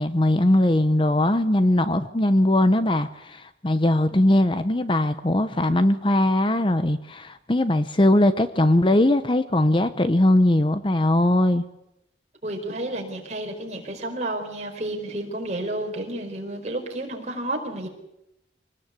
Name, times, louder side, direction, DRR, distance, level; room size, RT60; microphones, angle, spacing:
voice 1, 0.0-11.6, left 1 dB, 25° left, 11 dB, 0.8 m, -20 dB
voice 2, 12.4-17.9, right 1 dB, 40° right, 2 dB, 4.8 m, -31 dB
24.5 x 19.0 x 8.4 m, 0.85 s
head